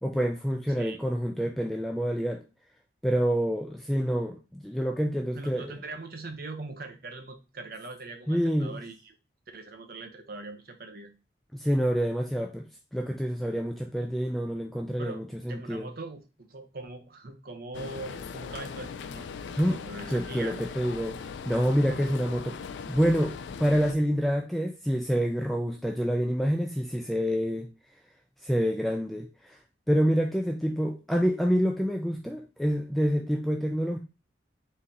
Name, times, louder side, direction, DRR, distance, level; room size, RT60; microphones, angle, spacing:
voice 1, 0.0-2.4 3.0-5.7 8.3-8.8 11.5-12.6 12.9-15.9 19.6-19.8 20.1-22.6 22.9-23.3 23.6-27.7 28.4-29.6 29.9-34.0, equal, ahead, 2 dB, 0.3 m, -27 dB
voice 2, 5.3-9.2 9.5-11.1 15.0-20.6, right 3 dB, 55° right, 7 dB, 0.7 m, -41 dB
sound 1, 17.7-24.0, left 6 dB, 85° left, 0.4 m, -39 dB
4.1 x 2.8 x 3.7 m, 0.30 s
head